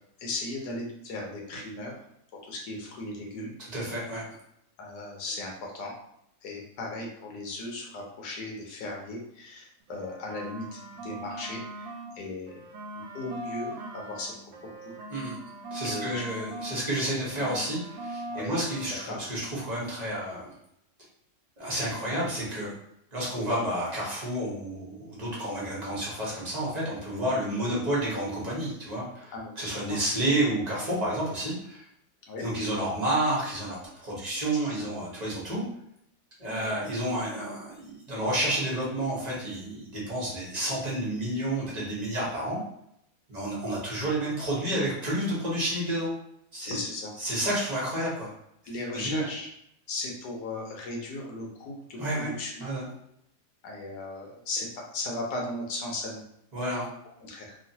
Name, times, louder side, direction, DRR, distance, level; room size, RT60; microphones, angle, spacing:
voice 1, 0.2-1.9 2.4-3.6 4.8-5.9 6.4-12.6 12.9-15.0 15.8-16.2 18.3-18.6 19.1-19.2 23.3-23.6 27.6-27.7 29.3-29.5 29.9-30.0 32.3-32.5 34.5-34.8 36.4-36.7 46.7-47.1 48.6-49.5 49.9-52.7 53.6-56.2 57.2-57.6, left 2 dB, 85° left, -1 dB, 1.3 m, -37 dB
voice 2, 3.6-4.2 15.1-15.4 15.7-20.5 21.6-22.7 23.1-31.8 32.4-33.8 34.0-35.6 36.4-42.6 43.3-46.1 46.5-46.8 47.2-48.3 48.9-49.2 52.0-52.3 52.6-52.8 56.5-56.9, right 1 dB, 30° right, -6 dB, 0.9 m, -30 dB
sound 1, 9.8-12.1 12.5-16.8 17.1-19.1, right 1 dB, 75° right, 1.0 m, -40 dB
3.0 x 2.5 x 2.7 m, 0.76 s
omnidirectional pair, 1.7 m